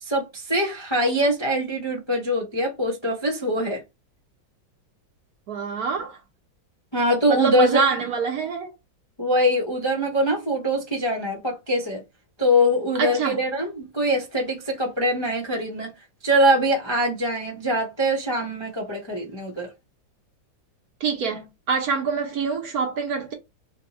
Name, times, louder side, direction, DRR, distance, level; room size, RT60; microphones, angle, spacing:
voice 1, 0.0-3.8 6.9-8.0 9.2-12.0 12.4-15.9 16.2-19.7, equal, 30° left, 0.4 m, -23 dB
voice 2, 5.5-6.2 7.3-8.7 13.0-13.4 21.0-23.3, right 5 dB, 60° right, 1.1 m, -25 dB
3.5 x 2.2 x 4.0 m
omnidirectional pair, 2.1 m